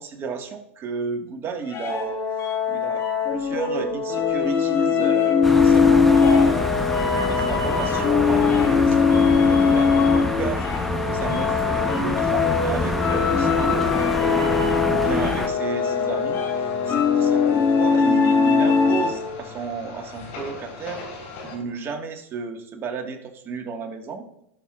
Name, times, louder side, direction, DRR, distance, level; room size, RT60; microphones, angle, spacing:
voice 1, 0.0-2.2 2.7-6.9 7.3-10.7 11.1-14.5 14.9-21.0 21.4-24.2, right 5 dB, 35° right, 4 dB, 1.6 m, -33 dB
sound 1, 1.7-19.4, left 5 dB, 35° left, 1.5 m, -21 dB
sound 2, 5.4-15.5, left 1 dB, ahead, 1.0 m, -27 dB
sound 3, 6.4-21.6, left 3 dB, 65° left, 3.8 m, -41 dB
16.5 x 6.4 x 2.4 m, 0.78 s
hypercardioid pair, 95°, 7 cm